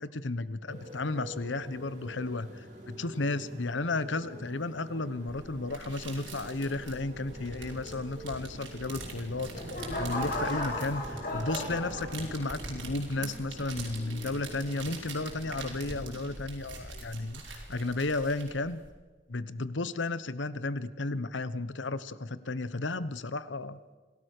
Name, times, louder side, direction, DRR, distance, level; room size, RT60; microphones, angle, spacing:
voice 1, 0.0-9.5 10.0-18.8 19.3-23.8, left 2 dB, 85° left, 15 dB, 1.0 m, -33 dB
Motorcycle, 0.7-16.3, equal, 40° right, 7.4 m, -47 dB
sound 1, 5.3-18.9, right 3 dB, 85° right, 5.5 m, -44 dB
sound 2, 9.1-12.6 13.2-13.5, left 1 dB, 50° left, 6.8 m, -36 dB
27.0 x 17.5 x 6.7 m, 1.3 s
head